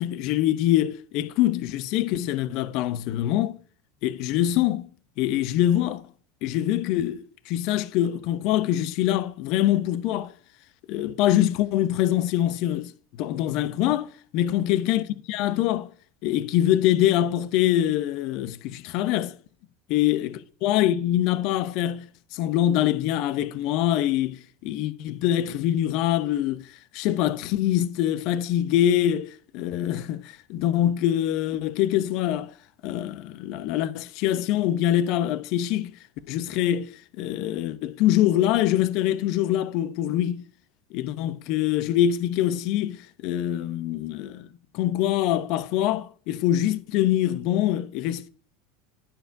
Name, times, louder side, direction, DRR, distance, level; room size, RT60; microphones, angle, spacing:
voice 1, 0.0-3.6 4.0-4.9 5.2-6.0 6.4-10.3 10.9-15.9 16.2-19.4 19.9-32.5 32.8-36.0 36.3-40.5 40.9-44.5 44.7-48.3, left 12 dB, 60° left, 0.7 m, -24 dB
10.0 x 7.0 x 2.6 m
hypercardioid pair, 85°, 0 cm